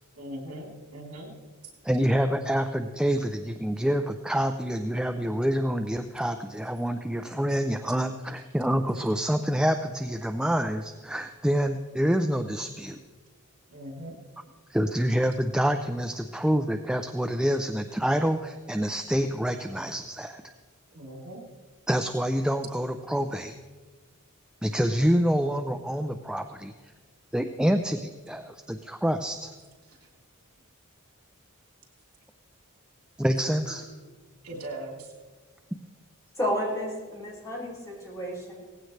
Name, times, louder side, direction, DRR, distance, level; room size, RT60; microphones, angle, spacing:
voice 1, 0.1-1.3 13.7-14.1 20.9-21.4 34.4-35.1, right 1 dB, 85° right, -1 dB, 3.3 m, -39 dB
voice 2, 1.8-13.0 14.7-20.4 21.9-23.5 24.6-26.7 27.3-29.5 33.2-33.9, equal, 5° right, 7 dB, 0.4 m, -27 dB
voice 3, 36.4-38.5, equal, 15° left, -5 dB, 4.8 m, -31 dB
18.0 x 15.5 x 3.2 m, 1.4 s
head